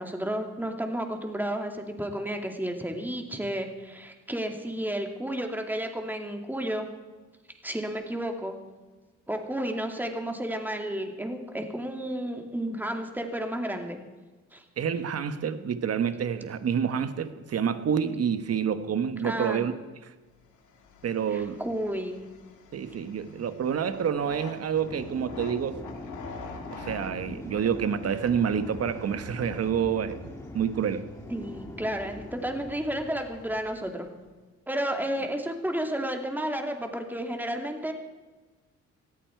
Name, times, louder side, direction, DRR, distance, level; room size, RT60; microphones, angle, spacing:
voice 1, 0.0-6.9 7.6-8.6 9.3-14.0 14.5-14.6 19.2-19.6 21.3-22.2 31.3-34.1 34.7-37.9, right 1 dB, 5° right, 4 dB, 2.4 m, -32 dB
voice 2, 14.8-19.7 21.0-21.6 22.7-25.8 26.7-30.2 30.5-31.0, right 7 dB, 55° right, 11 dB, 1.3 m, -28 dB
sound 1, 20.5-34.3, left 5 dB, 80° left, 2.2 m, -48 dB
sound 2, 24.7-33.7, left 1 dB, 10° left, 1.9 m, -43 dB
19.0 x 14.0 x 4.6 m, 1.3 s
cardioid pair, 90°, 30 cm